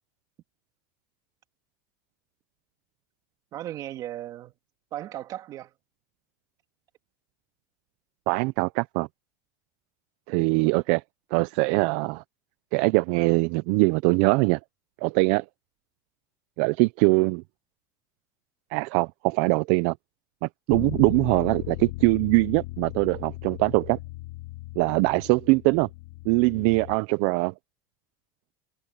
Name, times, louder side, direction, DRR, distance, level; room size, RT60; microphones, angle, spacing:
voice 1, 3.5-4.5 4.9-5.7 10.5-10.8, right 13 dB, 40° right, 2.3 m, -37 dB
voice 2, 8.3-9.1 10.3-11.0 11.3-12.2 12.7-14.6 15.0-15.4 16.6-17.4 18.7-20.0 20.4-24.0 24.8-25.9 26.3-27.5, right 25 dB, 60° right, 0.5 m, -22 dB
Bass guitar, 20.7-27.0, left 19 dB, 80° left, 2.9 m, -37 dB
supercardioid pair, 150°, 10 cm